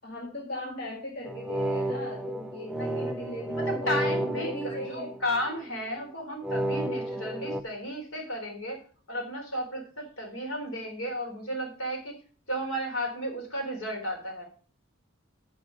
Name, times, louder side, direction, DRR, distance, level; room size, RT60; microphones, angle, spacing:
voice 1, 0.0-5.1, left 1 dB, 50° left, -3 dB, 2.0 m, -39 dB
sound 1, 1.3-5.6 6.4-7.6, right 1 dB, 5° right, 0.4 m, -32 dB
voice 2, 3.7-8.8 9.1-12.1 12.5-14.4, equal, 75° left, 2 dB, 3.8 m, -33 dB
9.7 x 5.2 x 6.3 m, 0.42 s
head